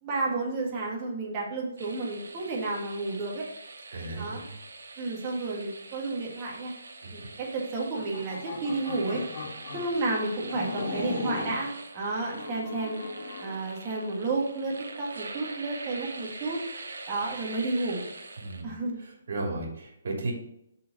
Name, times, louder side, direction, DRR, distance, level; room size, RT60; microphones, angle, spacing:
voice 1, 0.0-3.4 4.1-4.5 5.0-6.7 7.1-9.2 9.7-13.0 13.4-18.0 18.6-19.0, right 3 dB, 25° right, -2 dB, 1.7 m, -31 dB
sound 1, 1.8-18.6, right 3 dB, 85° right, 1.1 m, -44 dB
voice 2, 3.9-4.5 7.0-7.3 18.4-18.7 19.3-20.3, right 2 dB, 60° right, 0 dB, 2.8 m, -34 dB
sound 2, 7.8-9.9 10.5-11.6 12.2-13.6, left 3 dB, 45° left, 2.0 m, -37 dB
6.2 x 4.4 x 5.3 m, 0.80 s
hypercardioid pair, 160°, 0 cm